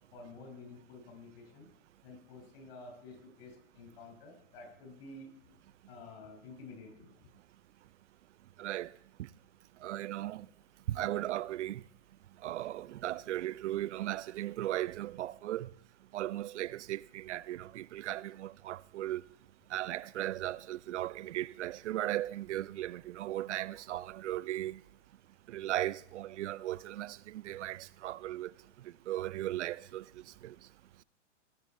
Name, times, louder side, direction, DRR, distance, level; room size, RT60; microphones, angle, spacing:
voice 1, 0.1-1.7 2.0-5.3 5.9-7.1, left 3 dB, 55° left, 6.3 m, -50 dB
voice 2, 8.6-8.9 9.2-9.3 9.8-10.5 10.9-11.8 12.4-15.7 16.1-19.2 19.7-24.8 25.5-28.5 28.8-30.6, right 14 dB, 75° right, 0.6 m, -37 dB
18.0 x 9.8 x 4.5 m
hypercardioid pair, 145°, 36 cm